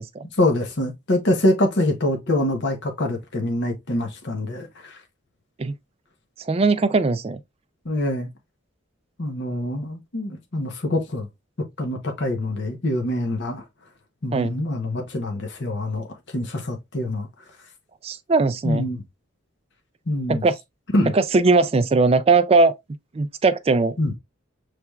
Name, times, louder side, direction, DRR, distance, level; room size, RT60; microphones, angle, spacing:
voice 1, 0.4-5.0 7.8-8.3 9.2-11.3 11.8-13.6 14.2-16.1 16.3-17.3 18.6-19.0 20.1-20.4 20.9-21.1 24.0-24.1, left 1 dB, 55° left, 0.9 m, -24 dB
voice 2, 6.4-7.4 14.3-14.5 18.0-18.9 20.3-20.6 21.1-22.7 23.1-23.9, right 3 dB, 30° right, 0.3 m, -19 dB
5.8 x 3.3 x 2.3 m
head